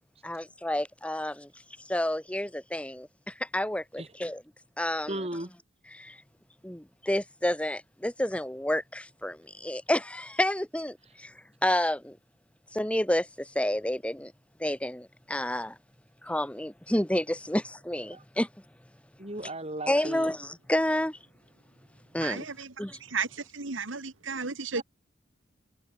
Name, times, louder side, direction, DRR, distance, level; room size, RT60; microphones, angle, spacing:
voice 1, 0.2-1.5 1.9-4.4 4.8-5.2 5.9-6.2 6.6-11.3 11.6-12.2 12.7-14.3 14.6-15.8 16.2-18.5 19.9-21.2 22.1-22.4 22.8-23.0, left 1 dB, 5° left, 1.3 m, -30 dB
voice 2, 5.1-5.5 11.0-11.1 18.1-18.2 19.2-20.3 24.8-24.9, right 1 dB, 30° right, 6.3 m, -36 dB
voice 3, 22.2-24.8, right 5 dB, 85° right, 2.0 m, -34 dB
head